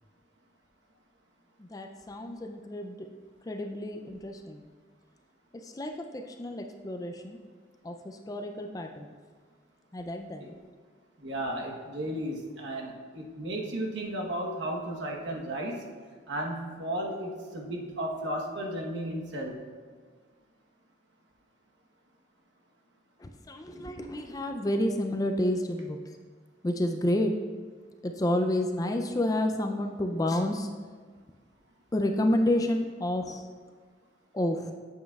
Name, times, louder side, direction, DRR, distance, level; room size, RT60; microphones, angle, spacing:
voice 1, 1.6-3.1 3.5-4.6 5.6-7.4 7.8-9.2 9.9-10.4 23.2-26.0 26.6-27.3 28.0-30.7 31.9-33.5 34.3-34.7, left 1 dB, 20° left, 5 dB, 0.4 m, -30 dB
voice 2, 11.2-15.7 16.3-19.6, right 1 dB, 75° right, 0 dB, 1.1 m, -34 dB
9.3 x 7.4 x 2.4 m, 1.5 s
head